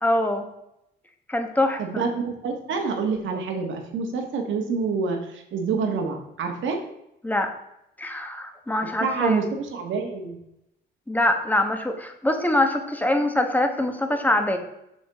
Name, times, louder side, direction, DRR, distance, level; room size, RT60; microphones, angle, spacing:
voice 1, 0.0-0.5 1.3-2.0 7.2-7.5 8.0-9.4 11.1-14.6, left 1 dB, 10° left, 5 dB, 1.3 m, -24 dB
voice 2, 1.8-6.8 8.8-10.4, right 5 dB, 75° right, 4 dB, 1.6 m, -27 dB
7.2 x 6.3 x 3.6 m, 0.83 s
cardioid pair, 90°, 20 cm